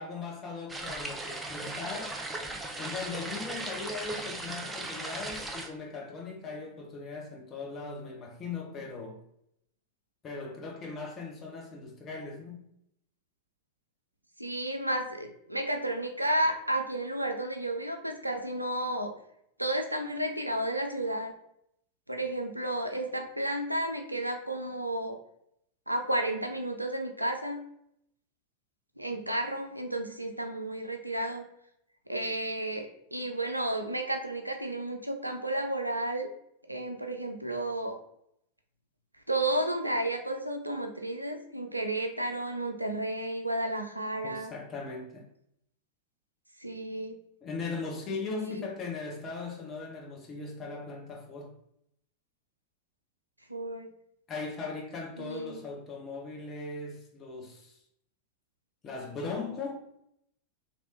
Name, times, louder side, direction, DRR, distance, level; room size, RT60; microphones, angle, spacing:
voice 1, 0.0-2.2 2.7-9.2 10.2-12.6 44.2-45.3 47.4-51.6 54.3-57.8 58.8-59.8, left 4 dB, 25° left, 0.9 m, -39 dB
sound 1, 0.7-5.7, right 2 dB, 10° right, 0.5 m, -37 dB
voice 2, 14.4-19.1 19.6-21.3 22.1-25.2 25.9-27.6 29.0-31.5 32.1-36.3 36.7-38.0 39.3-44.5 46.6-47.2 48.2-48.7 53.5-53.9 55.2-55.6, right 1 dB, 85° right, 0.3 m, -32 dB
3.3 x 2.9 x 2.8 m
figure-of-eight pair, 90°, 0 cm